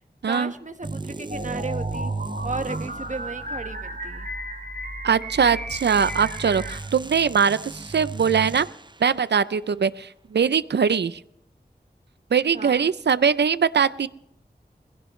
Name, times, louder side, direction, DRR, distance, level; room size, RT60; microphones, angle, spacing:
voice 1, 0.3-2.1 2.4-4.3 12.5-12.9, right 2 dB, 45° right, 8 dB, 1.3 m, -34 dB
sound 1, 0.8-3.7 5.7-9.1, right 3 dB, 25° right, 0.6 m, -35 dB
sound 2, 1.3-6.8, right 1 dB, 60° right, 2.6 m, -34 dB
voice 2, 5.0-8.7 9.0-11.2 12.3-14.1, right 6 dB, 90° right, 16 dB, 0.4 m, -21 dB
21.5 x 16.5 x 3.1 m, 0.75 s
wide cardioid pair, 50°, 17 cm